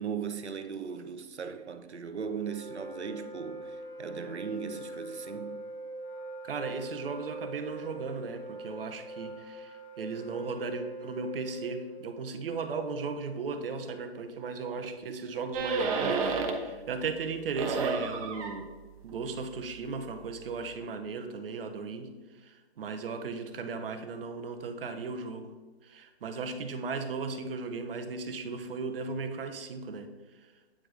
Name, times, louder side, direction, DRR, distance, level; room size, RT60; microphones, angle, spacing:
voice 1, 0.0-5.6, right 6 dB, 90° right, 0.7 m, -38 dB
Wind instrument woodwind instrument, 2.2-12.1, right 1 dB, 35° left, 1.9 m, -43 dB
voice 2, 6.4-18.7 19.0-25.5 25.8-30.5, right 4 dB, 60° right, 0.9 m, -36 dB
sound 1, 15.5-16.8 17.1-20.8, right 4 dB, 35° right, 0.9 m, -33 dB
8.8 x 4.9 x 3.7 m
figure-of-eight pair, 130°, 32 cm